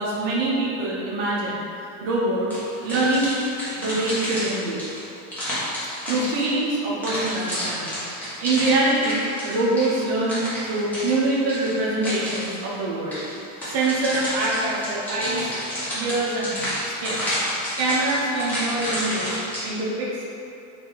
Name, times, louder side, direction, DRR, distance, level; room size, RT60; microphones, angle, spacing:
voice 1, 0.0-1.6 2.0-3.4 3.8-4.8 6.1-8.0 8.2-13.2 13.6-15.5 15.9-16.6 16.9-17.2 17.8-19.4 19.6-20.2, right 2 dB, 40° right, -6 dB, 0.9 m, -24 dB
sound 1, 2.5-6.7 7.0-12.6 13.1-19.6, equal, 5° left, 0.9 m, -30 dB
3.2 x 2.8 x 4.0 m, 2.8 s
supercardioid pair, 150°, 37 cm